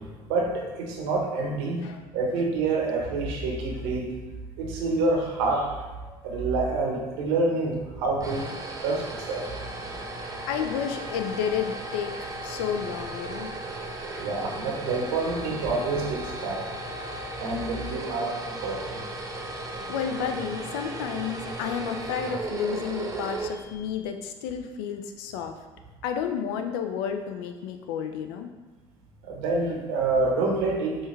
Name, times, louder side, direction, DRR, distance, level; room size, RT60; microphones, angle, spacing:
voice 1, 0.0-1.8 2.1-4.1 4.6-5.7 6.0-8.5 8.8-9.5 14.2-16.8 17.3-19.0 29.2-31.0, right 3 dB, 80° right, -1 dB, 0.9 m, -27 dB
sound 1, 7.9-24.1, right 2 dB, 25° right, 0.7 m, -36 dB
voice 2, 10.5-13.5 14.0-14.3 19.9-25.5 26.0-28.5, left 8 dB, 80° left, 6 dB, 0.4 m, -31 dB
5.3 x 2.3 x 3.1 m, 1.2 s
hypercardioid pair, 70°, 13 cm